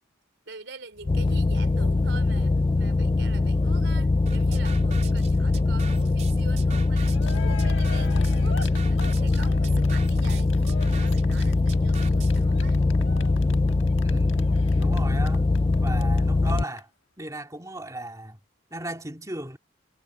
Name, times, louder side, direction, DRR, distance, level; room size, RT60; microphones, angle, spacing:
voice 1, 0.5-12.8, right 4 dB, 60° right, 3.6 m, -45 dB
sound 1, 1.0-16.6, left 3 dB, 25° left, 0.3 m, -22 dB
sound 2, 4.3-12.5, right 4 dB, 35° right, 4.2 m, -42 dB
Cheering, 6.8-6.9 7.1-16.2 16.5-16.6 16.8-16.9, left 4 dB, 70° left, 1.4 m, -41 dB
voice 2, 14.0-15.5 15.8-16.9 17.2-18.4 18.7-19.6, right 1 dB, 15° right, 2.6 m, -36 dB
head